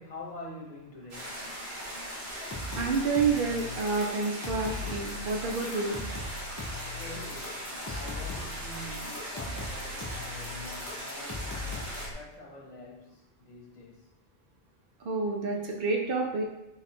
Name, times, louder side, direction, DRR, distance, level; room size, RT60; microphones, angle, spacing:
voice 1, 0.0-1.5 7.0-14.1, left 1 dB, 45° left, -2 dB, 0.9 m, -46 dB
sound 1, 1.1-12.1, equal, 85° right, 1.5 m, -39 dB
sound 2, 2.4-12.1, left 2 dB, 25° left, 0.4 m, -40 dB
voice 2, 2.7-6.0 15.0-16.4, right 4 dB, 65° right, 1 dB, 0.9 m, -29 dB
4.1 x 2.4 x 4.2 m, 0.91 s
omnidirectional pair, 1.1 m